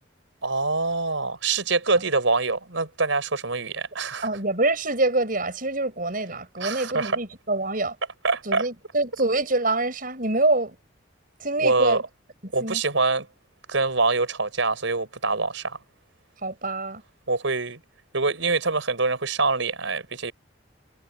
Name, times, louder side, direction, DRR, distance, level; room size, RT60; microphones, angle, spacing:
voice 1, 0.4-4.3 6.6-7.2 8.2-8.6 11.6-12.0 12.5-13.3 13.7-15.8 17.3-17.8 18.1-20.3, right 3 dB, 85° right, 4.7 m, -24 dB
voice 2, 4.2-8.0 8.4-10.8 11.4-12.0 12.4-12.8 16.4-17.0, right 2 dB, 45° right, 6.8 m, -25 dB
head